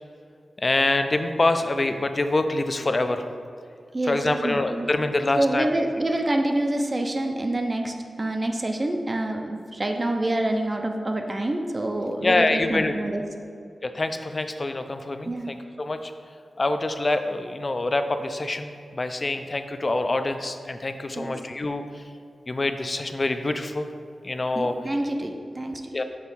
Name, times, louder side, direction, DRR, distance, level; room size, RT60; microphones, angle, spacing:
voice 1, 0.6-3.3 4.1-5.7 12.2-12.9 13.8-16.1 16.6-21.8 22.5-23.9 24.2-24.7 25.9-26.0, left 2 dB, 35° left, 8 dB, 0.4 m, -25 dB
voice 2, 3.9-4.9 5.3-13.2 15.3-15.5 21.1-21.4 24.5-25.8, right 1 dB, 25° right, 4 dB, 0.4 m, -27 dB
6.2 x 3.5 x 5.5 m, 2.3 s
wide cardioid pair, 125°, 0 cm